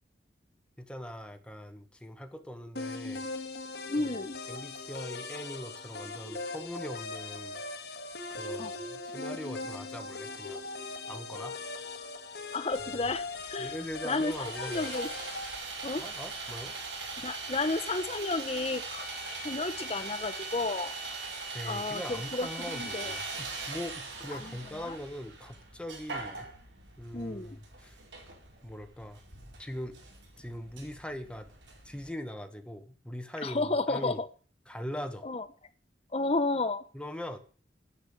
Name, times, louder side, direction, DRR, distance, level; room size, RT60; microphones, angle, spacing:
voice 1, 0.8-3.3 4.0-4.1 4.5-7.6 8.4-10.6 11.1-11.6 13.6-14.9 16.0-16.7 21.4-26.5 27.0-28.0 28.6-29.2 29.6-30.0 30.4-31.5 31.8-34.2 34.7-35.3 36.9-37.4, equal, 5° left, 7 dB, 1.4 m, -41 dB
sound 1, 2.8-15.6, left 3 dB, 65° left, 1.8 m, -40 dB
voice 2, 3.9-4.4 8.6-8.7 12.5-13.7 14.0-15.1 15.8-16.0 17.2-20.9 21.6-23.2 24.4-25.0 27.1-27.6 33.4-34.3 35.2-35.5 36.1-36.8, left 3 dB, 35° left, 9 dB, 1.1 m, -32 dB
Sawing, 12.7-32.1, right 3 dB, 90° right, 4.5 m, -41 dB
10.0 x 8.0 x 8.6 m, 0.40 s
head